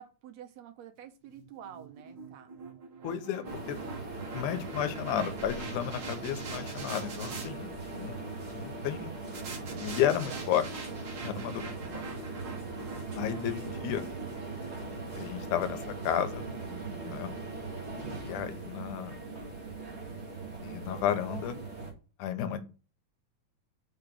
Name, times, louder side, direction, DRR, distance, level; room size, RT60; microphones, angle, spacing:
voice 1, 0.0-2.5 6.5-7.0 9.7-10.4 11.2-11.6 16.7-17.2, right 10 dB, 75° right, 9 dB, 1.7 m, -48 dB
sound 1, 1.3-7.5 9.3-15.6, right 4 dB, 50° right, 1.6 m, -45 dB
voice 2, 3.0-3.8 4.3-7.7 8.0-8.2 8.5-9.1 9.8-10.6 11.2-12.0 13.2-14.0 15.2-16.5 17.1-17.3 18.2-19.2 20.6-21.6 22.2-22.6, left 10 dB, 90° left, 11 dB, 2.3 m, -32 dB
sound 2, 3.4-21.9, right 3 dB, 30° right, 1.5 m, -40 dB
5.3 x 3.9 x 6.0 m, 0.35 s
omnidirectional pair, 3.4 m